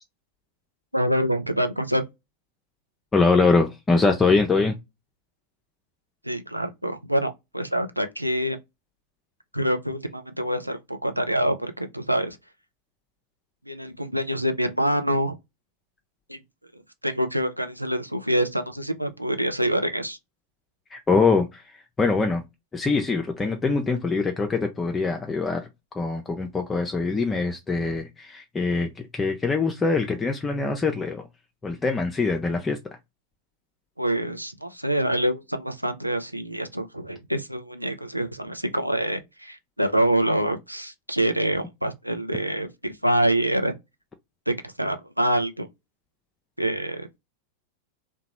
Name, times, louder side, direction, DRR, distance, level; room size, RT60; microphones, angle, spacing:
voice 1, 0.9-2.0 6.2-8.6 9.5-12.4 13.6-15.4 16.3-16.4 16.7-20.2 34.0-43.7 44.5-45.7 46.6-47.2, right 1 dB, 90° right, 0.4 m, -26 dB
voice 2, 3.1-4.8 20.9-22.4 22.7-25.7 26.0-31.2 31.6-32.8, left 4 dB, 15° left, 0.4 m, -23 dB
2.9 x 2.1 x 2.9 m
figure-of-eight pair, 90°, 0 cm